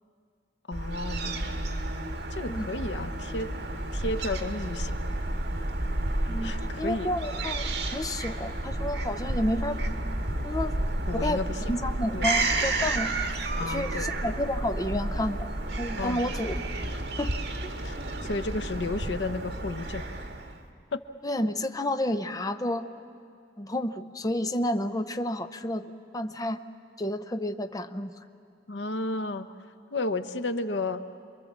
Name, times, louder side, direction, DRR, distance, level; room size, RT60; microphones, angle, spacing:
voice 1, 0.7-1.6 2.3-3.5 3.9-5.0 6.4-7.1 11.1-11.8 12.1-12.3 13.6-14.1 16.0-16.2 17.8-20.1 20.9-21.0 28.7-29.5 29.9-31.0, left 2 dB, 90° left, 9 dB, 0.9 m, -32 dB
Fowl / Gull seagull, 0.7-20.6, right 2 dB, 65° right, 1.8 m, -31 dB
voice 2, 6.3-9.9 10.4-10.7 11.1-13.1 13.6-15.5 15.8-16.6 17.2-17.3 17.6-17.7 21.2-22.9 23.6-26.6 27.0-28.1, left 1 dB, 20° left, 9 dB, 0.7 m, -30 dB
28.0 x 23.5 x 7.4 m, 2.3 s
head